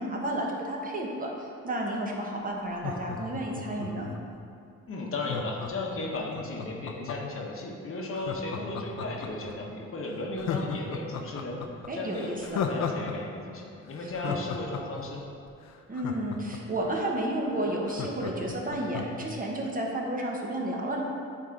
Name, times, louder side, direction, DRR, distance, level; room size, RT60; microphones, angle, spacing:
voice 1, 0.0-4.1 11.9-12.6 14.3-14.4 15.9-21.0, right 1 dB, 30° right, -1 dB, 1.0 m, -32 dB
Laughter, 2.7-4.4 5.2-7.4 8.1-9.5 9.9-10.0 10.4-13.1 13.4-13.5 13.9-16.8 17.2-17.3 17.5-19.3 19.7-19.8, left 7 dB, 65° left, 0.6 m, -35 dB
voice 2, 4.9-11.7 11.9-15.3, left 2 dB, 45° left, 0 dB, 1.0 m, -35 dB
8.3 x 3.6 x 3.8 m, 2.4 s
cardioid pair, 90°, 30 cm